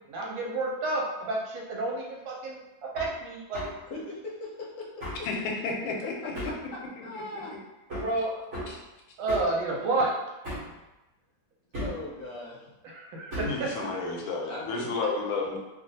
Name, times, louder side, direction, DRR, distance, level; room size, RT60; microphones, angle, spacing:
voice 1, 0.1-2.6 2.9-3.6 7.9-8.3 9.2-10.1 12.9-13.6, right 2 dB, 75° right, -2 dB, 1.4 m, -30 dB
Hammer, 2.9-3.1 3.5-3.8 5.0-5.3 6.3-6.7 7.9-8.2 8.5-8.8 9.3-9.6 10.4-10.8 11.7-12.1 13.3-13.6, equal, 45° right, 1.1 m, -35 dB
voice 2, 3.9-5.3 6.0-6.1 6.5-7.6 11.8-12.6 14.4-15.2, left 2 dB, 65° left, -4 dB, 1.3 m, -39 dB
voice 3, 5.2-6.3 7.0-7.1 8.7-8.8 13.4-15.6, left 3 dB, 90° left, 0 dB, 1.4 m, -31 dB
3.2 x 2.4 x 2.6 m, 1.0 s
omnidirectional pair, 2.2 m